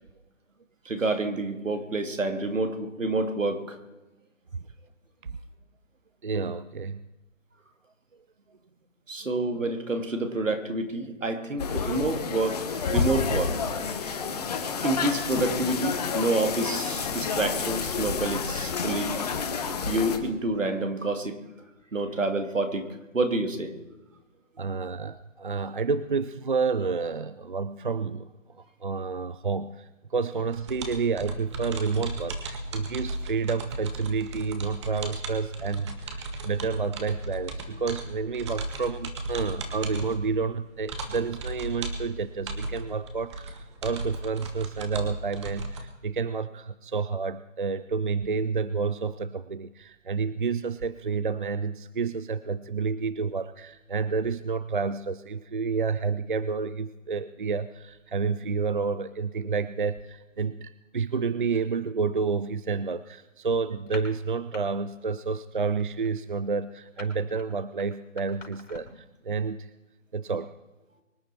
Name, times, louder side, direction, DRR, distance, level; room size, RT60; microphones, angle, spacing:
voice 1, 0.8-3.8 9.1-13.5 13.9-14.2 14.8-19.2 19.9-21.4 21.9-22.9 23.1-23.7, right 2 dB, 80° right, 6 dB, 2.8 m, -28 dB
voice 2, 6.2-7.0 24.6-28.3 28.8-69.7 70.1-70.5, right 5 dB, 40° right, 15 dB, 0.5 m, -30 dB
sound 1, 11.6-20.2, left 5 dB, 30° left, 1.6 m, -29 dB
sound 2, 30.5-45.8, right 2 dB, 20° right, 1.6 m, -36 dB
sound 3, 63.8-64.6 64.9-65.2 65.5-69.1, left 3 dB, 75° left, 5.2 m, -46 dB
24.0 x 9.9 x 4.5 m, 1.1 s
figure-of-eight pair, 160°, 38 cm